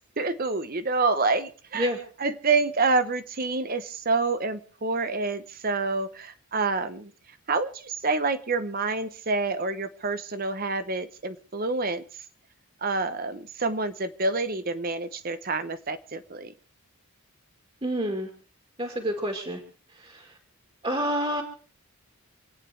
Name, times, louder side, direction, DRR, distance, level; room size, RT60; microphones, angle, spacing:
voice 1, 0.2-1.9 2.2-7.1 7.5-12.0 12.8-16.5, right 3 dB, 40° right, 11 dB, 0.9 m, -27 dB
voice 2, 17.8-18.3 18.8-19.6 19.9-20.4 20.8-21.4, equal, 25° right, 3 dB, 2.2 m, -28 dB
27.5 x 9.2 x 4.5 m, 0.43 s
head